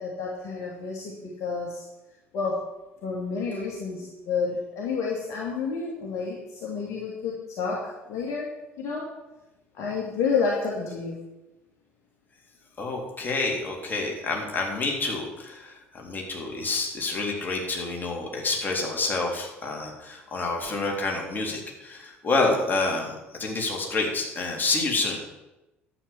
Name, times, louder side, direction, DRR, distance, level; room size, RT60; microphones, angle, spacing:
voice 1, 0.0-1.9 2.3-2.7 3.0-8.5 8.8-9.1 9.8-11.2, left 5 dB, 50° left, -3 dB, 2.5 m, -30 dB
voice 2, 12.8-25.2, left 3 dB, 30° left, 0 dB, 3.8 m, -28 dB
11.5 x 7.8 x 7.2 m, 1.0 s
figure-of-eight pair, 55°, 7 cm